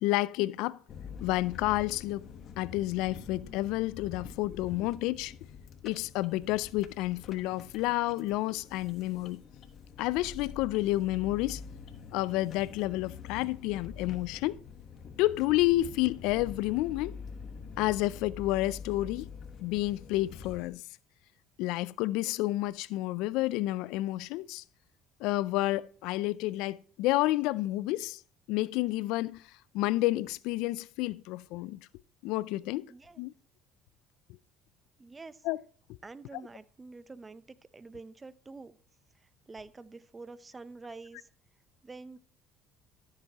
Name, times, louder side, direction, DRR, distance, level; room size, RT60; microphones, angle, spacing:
voice 1, 0.0-0.8 1.2-2.2 2.6-5.3 5.8-9.4 10.0-11.6 12.1-14.6 15.2-17.1 17.8-19.3 19.6-20.8 21.6-24.6 25.2-28.2 28.5-31.8 32.2-32.9 33.2-33.3 35.4-35.6, left 17 dB, 80° left, 0.3 m, -30 dB
sound 1, 0.9-20.7, left 6 dB, 55° left, 1.1 m, -46 dB
voice 2, 32.9-33.2 35.0-35.4 36.0-38.8 39.2-41.3 41.8-42.2, right 3 dB, 20° right, 0.7 m, -47 dB
13.5 x 7.4 x 2.9 m
supercardioid pair, 90°, 0 cm